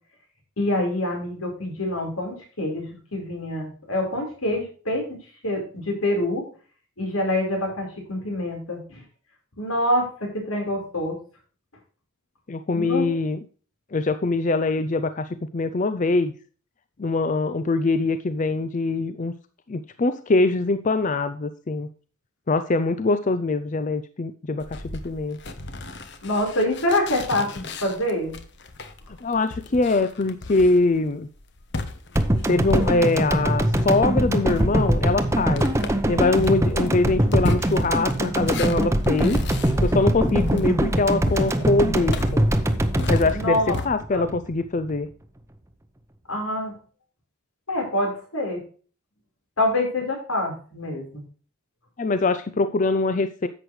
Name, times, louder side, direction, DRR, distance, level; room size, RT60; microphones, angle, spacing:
voice 1, 0.6-2.9 3.1-5.2 5.4-6.4 7.0-9.0 9.6-11.2 12.7-13.1 26.2-28.4 36.8-36.9 37.2-37.6 43.3-43.8 44.1-44.3 46.3-46.7 47.7-48.6 49.6-51.2, left 1 dB, 80° left, 1 dB, 4.5 m, -26 dB
voice 2, 12.5-13.4 13.9-16.3 17.0-19.3 19.7-21.9 22.5-25.4 29.2-31.3 32.5-35.7 36.1-39.4 39.8-42.4 43.1-45.1 52.0-53.5, left 3 dB, 35° left, 11 dB, 0.5 m, -23 dB
sound 1, 24.6-33.3 33.7-43.9, left 2 dB, 55° left, 1.1 m, -35 dB
sound 2, 32.1-44.5 44.8-44.9, right 1 dB, 15° right, 0.8 m, -23 dB
11.0 x 7.9 x 3.2 m, 0.40 s
head